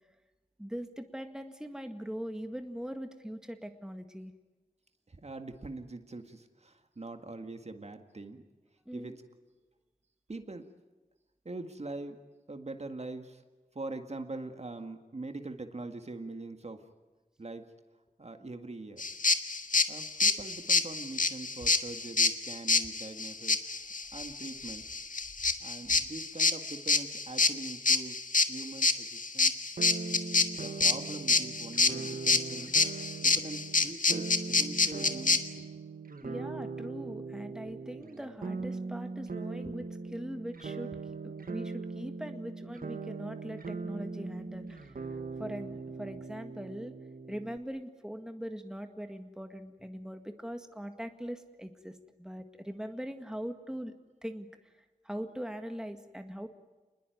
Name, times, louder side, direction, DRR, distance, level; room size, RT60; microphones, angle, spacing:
voice 1, 0.6-4.3 8.9-9.2 36.2-46.9 47.3-53.9 54.2-54.5 55.0-56.5, equal, 5° right, 6 dB, 1.9 m, -41 dB
voice 2, 5.1-8.4 8.9-9.2 10.3-10.7 11.5-12.2 12.5-13.4 13.8-16.8 17.4-17.7 18.2-19.0 19.9-23.7 24.1-24.8 25.6-28.2 28.5-29.6 30.6-32.7 33.2-35.7, right 2 dB, 50° right, 6 dB, 1.9 m, -43 dB
sound 1, 19.0-35.4, left 4 dB, 65° left, 1.6 m, -27 dB
sound 2, 29.8-47.6, right 4 dB, 85° right, 1.5 m, -40 dB
28.0 x 21.0 x 9.4 m, 1.2 s
wide cardioid pair, 85°, 15 cm